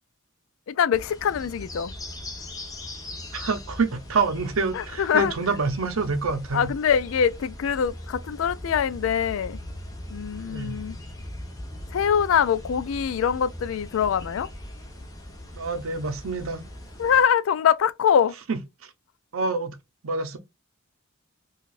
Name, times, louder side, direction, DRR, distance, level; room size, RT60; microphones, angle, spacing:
voice 1, 0.7-1.9 4.7-5.3 6.5-9.6 10.1-11.0 11.9-14.5 17.0-18.3, left 8 dB, 70° left, 0.3 m, -23 dB
sound 1, 0.9-17.2, left 1 dB, 15° left, 0.9 m, -40 dB
voice 2, 3.3-6.7 10.4-10.8 15.5-16.7 18.5-18.6 19.3-19.7 20.0-20.4, right 4 dB, 85° right, 0.7 m, -27 dB
4.7 x 2.4 x 2.4 m
head